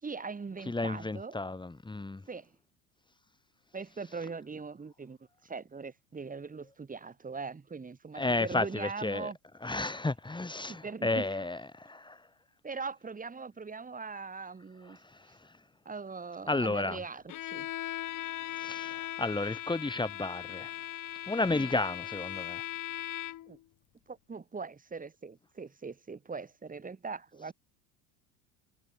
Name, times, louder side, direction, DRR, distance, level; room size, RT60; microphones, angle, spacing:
voice 1, 0.0-1.4 2.3-2.5 3.7-9.4 10.7-11.5 12.6-15.0 15.9-17.7 21.5-21.7 23.5-23.6 24.1-27.5, right 4 dB, 20° right, 6.7 m, -41 dB
voice 2, 0.7-2.2 8.1-9.3 9.6-12.2 15.0-15.5 16.5-17.0 18.5-20.7 21.3-22.6, left 2 dB, 10° left, 5.4 m, -32 dB
Bowed string instrument, 17.3-23.6, left 14 dB, 45° left, 7.8 m, -39 dB
hypercardioid pair, 90°, 41 cm